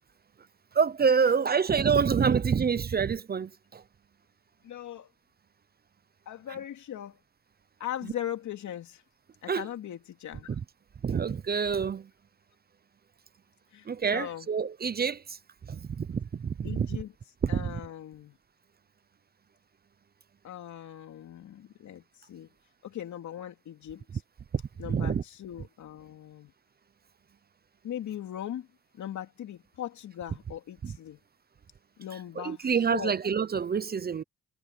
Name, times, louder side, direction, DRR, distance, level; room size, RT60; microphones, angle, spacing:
voice 1, 0.7-3.8 9.5-9.7 10.5-10.6 11.0-12.1 13.9-15.4 15.7-16.9 17.4-17.7 24.5-24.6 24.9-25.2 30.8-30.9 32.4-34.2, right 6 dB, 30° right, 0.7 m, -27 dB
voice 2, 4.6-5.1 6.2-7.2 7.8-9.0 9.4-10.6 13.7-14.5 16.6-17.1 17.5-18.4 20.4-22.5 22.8-24.2 24.8-26.5 27.8-28.7 28.9-31.2 32.0-33.2, left 11 dB, 70° left, 3.1 m, -39 dB
cardioid pair, 90°, 30 cm